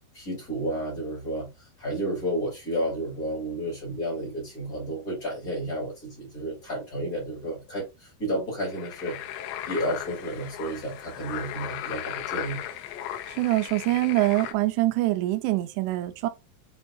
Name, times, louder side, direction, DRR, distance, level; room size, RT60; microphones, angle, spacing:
voice 1, 0.1-12.6, right 1 dB, 40° left, 1.3 m, -32 dB
sound 1, 8.7-14.5, left 11 dB, 85° left, 2.9 m, -37 dB
voice 2, 13.4-16.3, right 17 dB, 85° right, 2.5 m, -24 dB
7.3 x 2.6 x 2.2 m
omnidirectional pair, 5.3 m